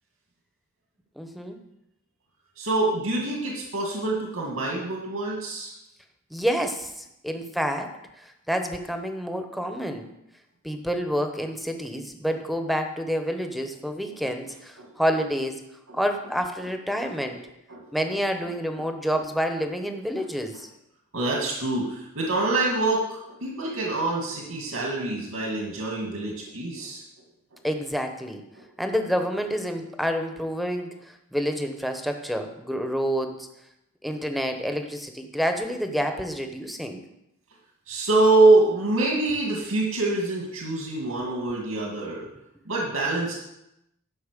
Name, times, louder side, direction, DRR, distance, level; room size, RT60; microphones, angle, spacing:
voice 1, 1.2-1.6 6.3-10.1 10.6-15.6 15.9-17.4 17.9-20.7 27.6-28.4 28.8-30.9 31.3-33.5 34.0-37.0, equal, ahead, 6 dB, 0.9 m, -28 dB
voice 2, 2.6-5.7 14.8-14.9 15.9-16.0 17.0-17.1 17.7-17.8 21.1-27.0 37.9-42.2 42.7-43.3, right 2 dB, 85° right, -2 dB, 2.1 m, -25 dB
12.0 x 5.5 x 6.7 m, 0.86 s
head